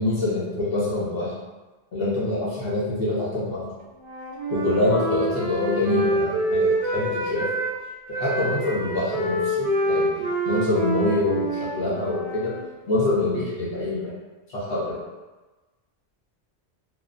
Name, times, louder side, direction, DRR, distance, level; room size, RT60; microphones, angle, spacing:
voice 1, 0.0-1.4 1.9-3.7 4.5-7.5 8.1-10.2 10.4-12.5 12.9-14.2 14.5-15.0, left 2 dB, 60° left, -8 dB, 1.1 m, -25 dB
Wind instrument woodwind instrument, 4.0-7.8 8.1-12.6, right 1 dB, 45° right, 0.5 m, -26 dB
2.8 x 2.2 x 2.5 m, 1.2 s
omnidirectional pair, 1.1 m